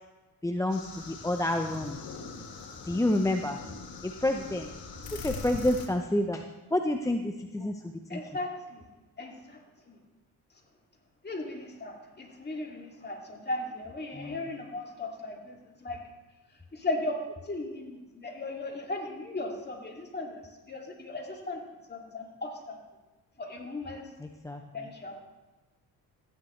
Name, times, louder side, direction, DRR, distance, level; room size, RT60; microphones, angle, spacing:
voice 1, 0.4-2.1 2.9-3.6 4.0-4.7 5.1-6.4 6.7-7.8 8.1-8.2 14.1-14.4 24.2-24.9, left 1 dB, 10° left, 4 dB, 0.6 m, -29 dB
sound 1, 0.7-5.9, left 4 dB, 65° left, 1.7 m, -42 dB
voice 2, 8.1-8.8 9.2-9.6 11.2-16.0 16.7-17.2 17.5-20.4 20.7-21.6 21.9-22.8 23.4-24.1 24.7-25.2, left 2 dB, 25° left, 0 dB, 2.4 m, -37 dB
14.5 x 9.4 x 3.2 m, 1.2 s
cardioid pair, 85°, 38 cm